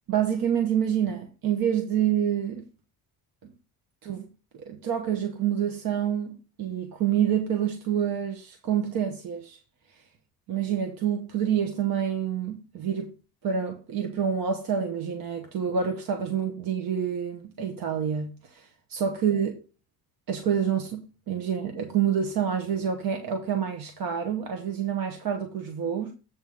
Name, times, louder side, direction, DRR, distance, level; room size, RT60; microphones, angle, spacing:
voice 1, 0.1-2.6 3.4-3.5 4.0-4.3 4.5-9.6 10.5-13.1 13.4-19.6 20.3-26.1, right 8 dB, 55° right, 1.1 m, -27 dB
8.1 x 3.7 x 6.3 m
cardioid pair, 170°, 42 cm